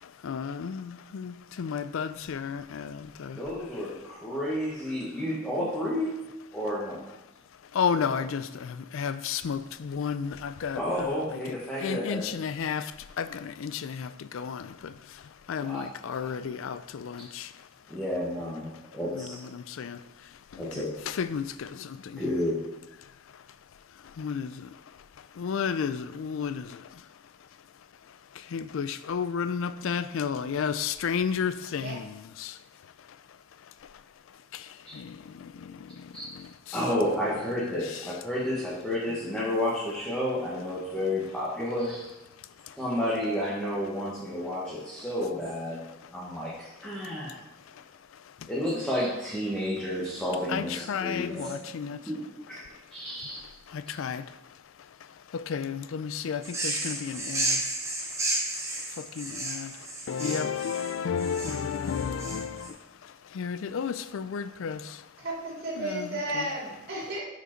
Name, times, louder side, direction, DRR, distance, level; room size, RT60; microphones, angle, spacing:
voice 1, 0.0-3.4 7.7-17.7 19.1-22.2 23.0-23.4 24.0-24.8 25.2-27.1 28.1-32.6 33.1-33.2 33.8-33.9 34.5-36.8 37.8-38.0 42.6-42.8 47.0-47.4 47.7-47.8 48.1-48.5 50.5-52.1 53.7-54.6 55.0-58.3 58.7-65.1 65.8-66.5, left 6 dB, 65° left, 14 dB, 0.3 m, -33 dB
voice 2, 3.4-6.1 6.5-7.0 7.9-8.2 10.8-12.3 15.6-15.9 17.2-17.3 17.9-19.3 20.6-20.9 22.2-22.6 34.8-34.9 36.1-36.2 36.7-42.1 42.8-47.4 48.5-51.5 51.8-53.4, left 1 dB, 5° left, -8 dB, 1.2 m, -31 dB
sound 1, 56.4-62.7, right 2 dB, 15° right, 0.9 m, -32 dB
voice 3, 65.2-67.2, right 2 dB, 45° right, -5 dB, 2.6 m, -33 dB
6.5 x 5.0 x 4.4 m, 0.95 s
head